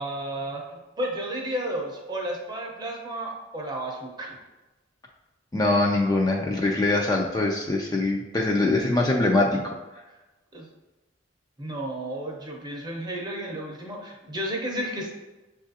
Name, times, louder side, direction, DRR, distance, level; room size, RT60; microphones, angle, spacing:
voice 1, 0.0-4.4 10.5-10.7 11.6-15.1, right 1 dB, 20° right, 0 dB, 0.7 m, -32 dB
voice 2, 5.5-9.7, left 2 dB, 20° left, -1 dB, 0.3 m, -23 dB
7.1 x 2.4 x 2.7 m, 1.1 s
head